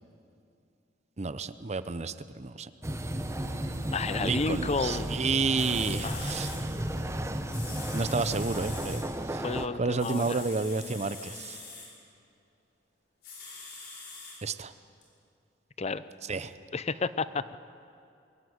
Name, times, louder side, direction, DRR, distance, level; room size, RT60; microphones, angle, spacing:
voice 1, 1.2-2.7 4.2-6.5 7.9-9.0 9.3-9.4 9.8-11.6 14.4-14.7 16.3-16.5, right 4 dB, 35° right, 13 dB, 0.7 m, -30 dB
sound 1, 2.8-9.7, right 1 dB, 15° right, 1.0 m, -34 dB
voice 2, 3.9-5.1 6.0-6.4 9.4-10.4 15.8-16.0 16.7-17.6, left 4 dB, 35° left, 15 dB, 0.6 m, -31 dB
sound 2, 4.2-8.7, equal, 5° left, 1.1 m, -47 dB
sound 3, 5.3-5.4 5.6-6.6 7.5-9.0 10.0-11.9 13.2-14.4 15.0-15.1, left 4 dB, 60° left, 5.6 m, -44 dB
23.0 x 14.5 x 9.8 m, 2.5 s
head